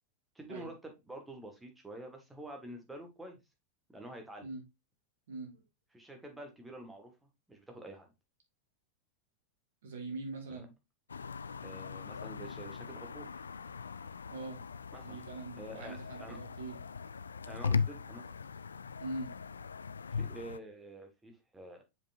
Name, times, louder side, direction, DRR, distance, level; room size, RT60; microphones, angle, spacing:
voice 1, 0.4-3.4 3.9-4.5 5.9-7.1 7.5-8.1 10.5-10.7 11.6-13.3 14.9-15.2 15.5-16.4 17.5-18.2 20.1-21.8, right 1 dB, 10° right, 1.9 m, -48 dB
voice 2, 5.3-5.6 9.8-10.7 14.3-14.6 15.0-16.8 19.0-19.3, right 2 dB, 60° right, 2.3 m, -42 dB
sound 1, 11.1-20.6, left 5 dB, 70° left, 0.3 m, -39 dB
7.0 x 5.3 x 2.7 m
figure-of-eight pair, 90°, 0 cm